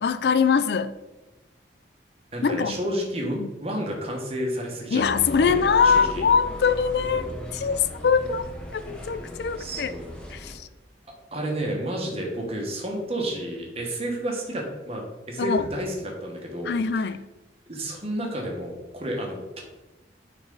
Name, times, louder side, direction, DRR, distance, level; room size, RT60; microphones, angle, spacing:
voice 1, 0.0-1.0 2.4-2.8 3.4-3.5 4.9-7.7 8.0-8.4 8.7-9.9 10.3-10.7 15.4-15.7 16.7-17.2, left 5 dB, 60° left, 0.4 m, -23 dB
voice 2, 2.3-5.0 5.8-6.2 7.0-7.3 9.6-10.2 11.3-17.1 17.7-19.6, right 1 dB, 30° right, 1.4 m, -31 dB
exterior sala juegos, 5.0-10.6, left 1 dB, 5° left, 1.0 m, -37 dB
9.0 x 4.1 x 3.9 m
head